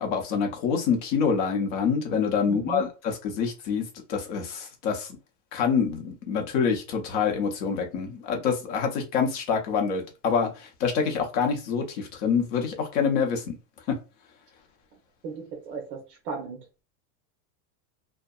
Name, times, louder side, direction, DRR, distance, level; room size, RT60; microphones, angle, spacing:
voice 1, 0.0-5.2 5.5-13.5 13.9-14.0, left 6 dB, 45° left, 0.8 m, -26 dB
voice 2, 2.5-2.8 15.2-16.6, right 5 dB, 50° right, 0.8 m, -36 dB
2.7 x 2.1 x 2.2 m
supercardioid pair, 170°, 49 cm